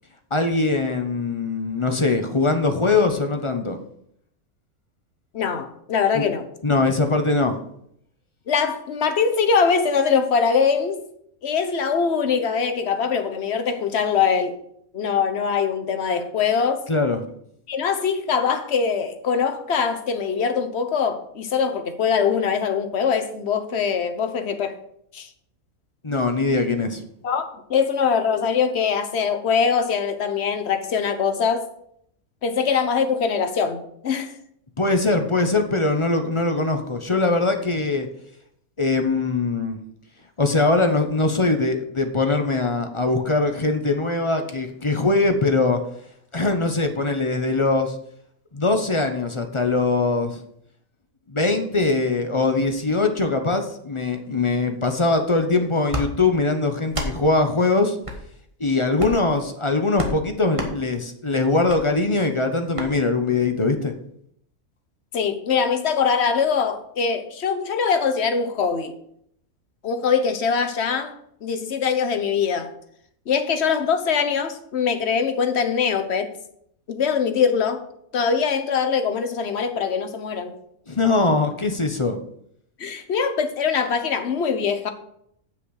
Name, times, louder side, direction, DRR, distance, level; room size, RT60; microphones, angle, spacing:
voice 1, 0.3-3.8 6.1-6.2 6.6-7.5 16.9-17.2 26.0-27.0 34.8-38.1 38.8-39.8 40.4-45.8 46.3-47.9 48.5-50.4 51.3-58.0 58.6-63.9 80.9-82.2, left 3 dB, 25° left, 0.7 m, -21 dB
voice 2, 5.3-6.5 8.5-11.0 11.4-14.5 14.9-16.8 17.7-24.8 25.1-25.3 27.2-31.7 32.4-34.3 65.1-68.9 69.8-71.1 71.4-72.7 73.3-76.3 76.9-77.8 78.1-80.5 82.8-84.9, left 6 dB, 50° left, 1.1 m, -22 dB
sound 1, 55.9-56.1 56.9-57.1 58.0-58.2 58.9-59.3 60.0-60.2 60.5-60.7 61.7-61.8 62.7-62.9, equal, 25° right, 1.2 m, -28 dB
7.8 x 6.0 x 6.4 m
omnidirectional pair, 1.5 m